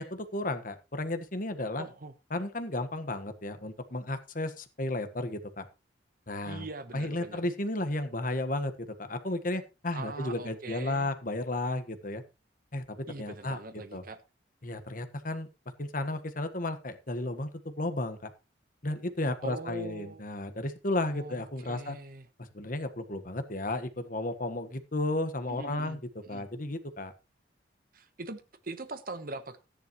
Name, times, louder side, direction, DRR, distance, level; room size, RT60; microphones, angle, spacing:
voice 1, 0.0-1.8 2.3-5.6 6.3-6.7 6.9-12.2 12.7-13.6 13.9-14.0 14.6-15.5 15.8-18.3 18.8-22.0 22.4-26.0 26.3-27.1, left 2 dB, 50° left, 9 dB, 1.5 m, -33 dB
voice 2, 1.8-2.1 6.4-7.4 9.9-11.1 13.1-14.2 19.4-20.2 21.1-22.3 25.5-26.0 26.3-26.5 27.9-29.6, right 3 dB, 50° right, 10 dB, 1.1 m, -42 dB
14.0 x 10.5 x 3.1 m, 0.28 s
head